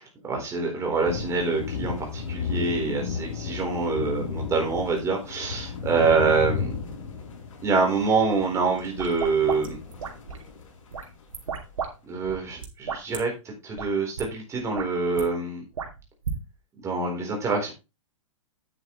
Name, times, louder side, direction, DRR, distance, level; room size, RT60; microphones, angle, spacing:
voice 1, 0.0-6.7 7.6-9.8 12.1-15.6 16.8-17.7, right 4 dB, 15° right, 0 dB, 3.9 m, -26 dB
sound 1, 1.1-11.2, left 6 dB, 75° left, 5.1 m, -34 dB
sound 2, 8.8-10.5 10.9-11.9 12.2-13.2 13.7-13.9 14.2-14.3 14.6-15.2 15.7-16.4, right 6 dB, 85° right, 2.8 m, -34 dB
9.7 x 8.2 x 3.2 m, 0.27 s
hypercardioid pair, 135°, 17 cm